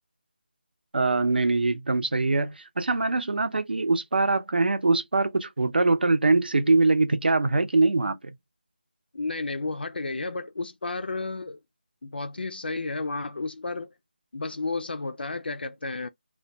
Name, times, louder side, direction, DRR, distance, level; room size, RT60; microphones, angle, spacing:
voice 1, 0.9-8.2, right 3 dB, 70° right, 0.6 m, -23 dB
voice 2, 9.1-11.6 12.0-13.9 14.3-16.1, left 3 dB, 80° left, 0.4 m, -32 dB
2.2 x 2.2 x 2.7 m
figure-of-eight pair, 175°, 5 cm